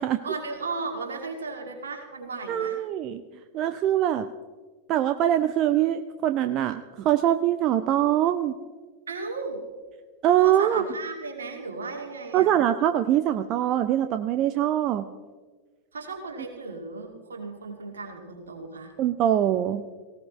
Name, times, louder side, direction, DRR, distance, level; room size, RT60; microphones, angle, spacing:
voice 1, 0.2-2.8 9.1-9.6 10.4-12.5 15.9-18.9, right 3 dB, 70° right, 3 dB, 2.3 m, -35 dB
voice 2, 2.5-3.2 3.5-4.3 4.9-8.6 10.2-10.8 12.3-15.1 19.0-19.8, right 11 dB, 35° right, 10 dB, 0.5 m, -23 dB
18.5 x 17.0 x 3.2 m, 1.4 s
figure-of-eight pair, 90°, 0 cm